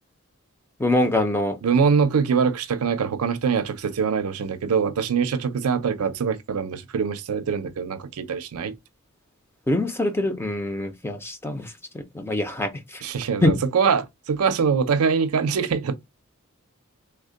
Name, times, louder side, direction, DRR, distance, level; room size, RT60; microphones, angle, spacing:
voice 1, 0.8-1.6 9.7-11.7 11.9-12.7 13.4-13.6, left 1 dB, 10° left, 0.4 m, -24 dB
voice 2, 1.6-8.8 13.0-16.0, right 6 dB, 75° right, 0.5 m, -23 dB
3.3 x 2.1 x 3.7 m
head